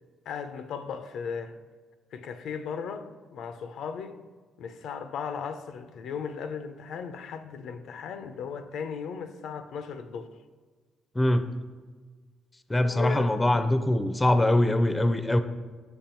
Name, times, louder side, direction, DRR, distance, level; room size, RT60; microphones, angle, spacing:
voice 1, 0.3-1.5 2.1-4.2 4.6-10.3 12.8-13.4, left 6 dB, 75° left, 0.4 m, -36 dB
voice 2, 11.2-11.5 12.7-15.4, left 1 dB, 15° left, 0.4 m, -23 dB
5.5 x 5.3 x 4.3 m
cardioid pair, 90°, 0 cm